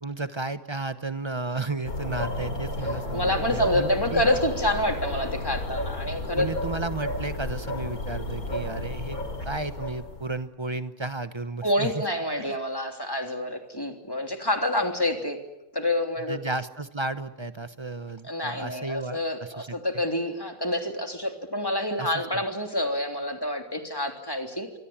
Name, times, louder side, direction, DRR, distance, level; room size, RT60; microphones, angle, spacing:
voice 1, 0.0-4.2 6.4-12.0 12.4-12.6 16.3-19.8 22.0-22.4, right 3 dB, 25° right, 11 dB, 0.7 m, -33 dB
sound 1, 1.8-10.4, left 1 dB, 50° left, 4.1 m, -32 dB
voice 2, 3.1-6.5 11.6-15.4 15.7-16.4 18.2-24.8, left 1 dB, 10° left, 4 dB, 3.2 m, -27 dB
27.5 x 24.0 x 8.8 m, 0.90 s
omnidirectional pair, 1.9 m